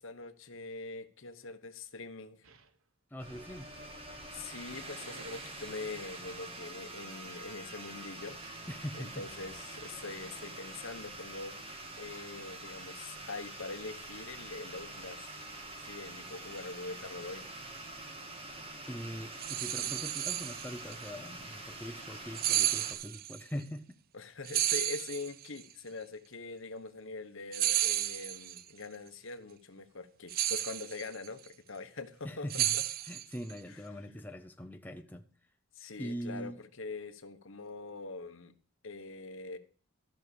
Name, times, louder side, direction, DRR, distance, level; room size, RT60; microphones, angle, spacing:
voice 1, 0.0-2.4 4.3-8.7 9.0-11.5 11.9-15.3 15.8-17.5 24.1-32.8 33.7-33.8 35.8-38.5 38.8-39.6, left 3 dB, 60° left, 1.1 m, -43 dB
sound 1, 2.4-2.8 3.3-4.5 5.0-5.8 7.7-8.2 8.6-10.1, right 1 dB, 65° right, 1.0 m, -57 dB
voice 2, 3.1-3.7 8.7-9.2 18.9-23.9 32.2-32.8 33.0-35.3 36.0-36.6, equal, 10° left, 0.6 m, -42 dB
sound 2, 3.2-22.9, right 2 dB, 25° right, 1.7 m, -46 dB
sound 3, 19.4-20.9 22.3-23.4 24.4-25.6 27.5-28.6 30.3-31.3 32.5-33.5, right 13 dB, 40° right, 0.4 m, -32 dB
13.5 x 6.1 x 6.9 m
head